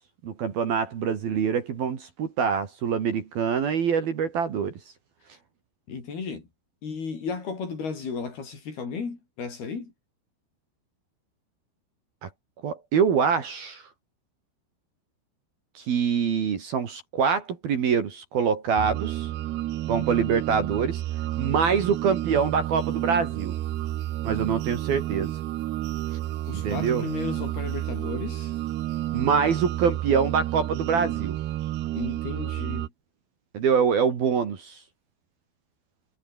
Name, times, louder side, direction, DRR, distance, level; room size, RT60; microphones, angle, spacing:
voice 1, 0.2-4.7 12.2-12.3 12.6-13.8 15.8-19.3 19.9-21.0 21.4-23.5 24.2-25.4 26.5-27.0 29.1-31.4 33.5-34.8, right 6 dB, 50° right, 4.0 m, -25 dB
voice 2, 5.9-6.5 6.8-9.9 26.5-28.5 31.9-32.9, left 5 dB, 50° left, 7.0 m, -34 dB
sound 1, 18.8-32.9, right 14 dB, 70° right, 2.9 m, -31 dB
omnidirectional pair, 6.0 m